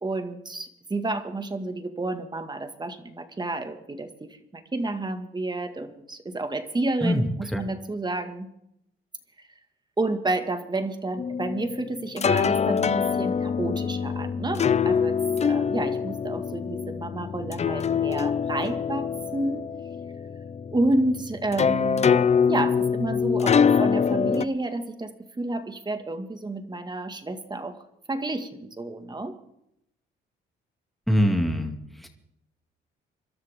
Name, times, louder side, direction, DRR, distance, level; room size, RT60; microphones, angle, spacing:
voice 1, 0.0-8.5 10.0-19.7 20.7-22.1 22.5-27.8 28.1-29.4, right 2 dB, 20° right, 7 dB, 1.9 m, -30 dB
sound 1, 11.2-24.4, left 6 dB, 35° left, 0.6 m, -24 dB
voice 2, 31.1-32.1, equal, ahead, 3 dB, 2.5 m, -23 dB
25.5 x 12.5 x 3.7 m, 0.78 s
cardioid pair, 90°, 20 cm